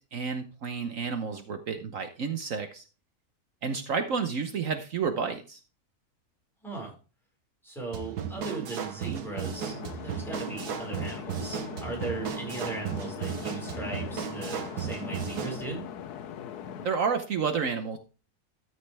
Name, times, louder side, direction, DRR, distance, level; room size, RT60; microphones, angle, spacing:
voice 1, 0.1-2.8 3.6-5.6 16.8-18.0, right 5 dB, 60° right, 7 dB, 1.2 m, -30 dB
voice 2, 6.6-6.9 7.6-9.7 10.0-15.9, right 3 dB, ahead, -2 dB, 5.1 m, -38 dB
sound 1, 7.9-15.6, right 8 dB, 85° right, 1.6 m, -35 dB
sound 2, 9.3-16.9, left 9 dB, 85° left, 1.3 m, -40 dB
13.5 x 6.4 x 3.3 m, 0.33 s
omnidirectional pair, 1.6 m